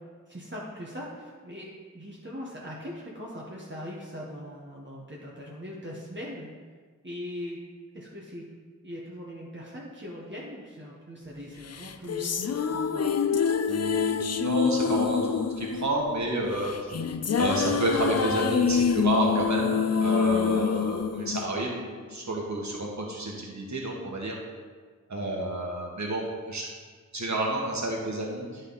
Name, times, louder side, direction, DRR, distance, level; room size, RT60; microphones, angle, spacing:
voice 1, 0.3-6.5 7.0-7.6 7.9-8.4 8.8-13.1, equal, 35° right, -5 dB, 1.4 m, -40 dB
sound 1, 11.7-22.1, left 6 dB, 50° left, 0.5 m, -26 dB
voice 2, 13.7-16.9 17.4-21.8 22.1-24.4 25.1-26.7 27.1-28.6, right 1 dB, 60° right, -2 dB, 1.7 m, -30 dB
9.9 x 5.3 x 4.1 m, 1.5 s
wide cardioid pair, 55°, 32 cm